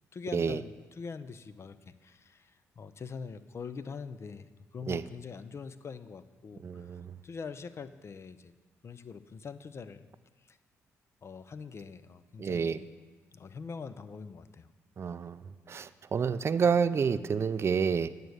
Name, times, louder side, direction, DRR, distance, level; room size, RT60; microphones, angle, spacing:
voice 1, 0.1-2.5 2.8-4.5 4.7-6.9 7.2-8.5 8.8-10.0 10.5-10.6 11.2-12.9 13.3-14.7, left 5 dB, 45° left, 12 dB, 0.6 m, -43 dB
voice 2, 6.6-7.2 12.4-12.8 15.0-15.4 15.7-18.1, right 6 dB, 45° right, 14 dB, 0.4 m, -29 dB
8.9 x 6.6 x 6.4 m, 1.3 s
supercardioid pair, 60°, 6 cm